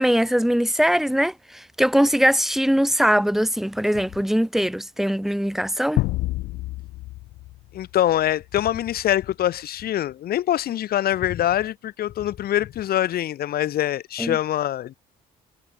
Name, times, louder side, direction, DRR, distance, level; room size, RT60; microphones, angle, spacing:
voice 1, 0.0-6.0 14.2-14.4, equal, ahead, 3.1 m, -21 dB
sound 1, 6.0-8.5, left 19 dB, 85° left, 2.8 m, -28 dB
voice 2, 7.7-14.9, left 12 dB, 65° left, 6.7 m, -24 dB
cardioid pair, 110°, 17 cm